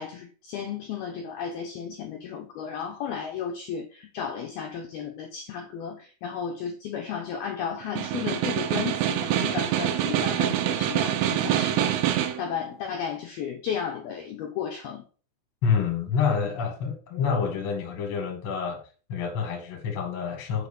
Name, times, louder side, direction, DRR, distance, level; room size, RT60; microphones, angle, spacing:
voice 1, 0.0-15.1, left 7 dB, 70° left, 2 dB, 2.4 m, -34 dB
Snare drum, 7.8-12.5, right 11 dB, 80° right, 3.6 m, -25 dB
voice 2, 15.6-18.8 19.1-20.7, left 6 dB, 45° left, 2 dB, 1.9 m, -27 dB
8.2 x 4.7 x 7.1 m, 0.38 s
omnidirectional pair, 5.8 m